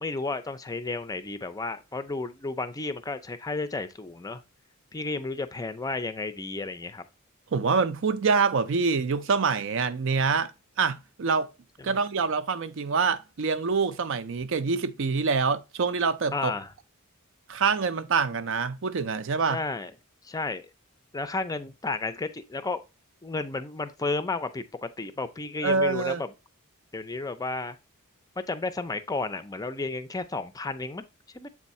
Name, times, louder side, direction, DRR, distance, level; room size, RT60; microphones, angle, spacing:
voice 1, 0.0-4.4 4.9-7.0 11.8-12.0 16.3-16.7 19.5-19.9 20.2-20.7 21.1-22.8 23.2-26.3 26.9-27.8 28.5-31.0 31.3-31.5, left 3 dB, 15° left, 0.4 m, -32 dB
voice 2, 7.5-10.5 10.8-11.5 11.8-16.5 17.5-19.6 25.6-26.2, right 5 dB, 60° right, 0.5 m, -25 dB
7.5 x 3.6 x 4.1 m
head